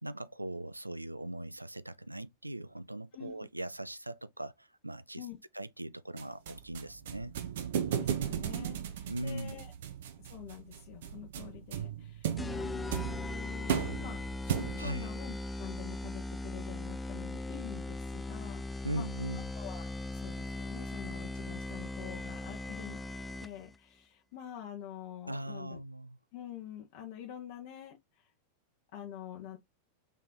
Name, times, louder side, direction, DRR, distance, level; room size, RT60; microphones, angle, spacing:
voice 1, 0.0-5.3 5.5-7.3 9.1-9.6 14.8-15.1 18.8-19.5 25.3-26.2, right 1 dB, 85° right, 0.3 m, -40 dB
sound 1, 6.2-15.0, right 9 dB, 60° right, 0.7 m, -36 dB
voice 2, 8.0-9.7 10.2-19.1 19.5-23.0 23.4-25.8 26.3-28.3 28.9-29.6, left 10 dB, 50° left, 0.9 m, -47 dB
sound 2, 12.4-23.8, left 2 dB, 10° left, 0.3 m, -39 dB
3.7 x 3.3 x 3.7 m
figure-of-eight pair, 90°, 0 cm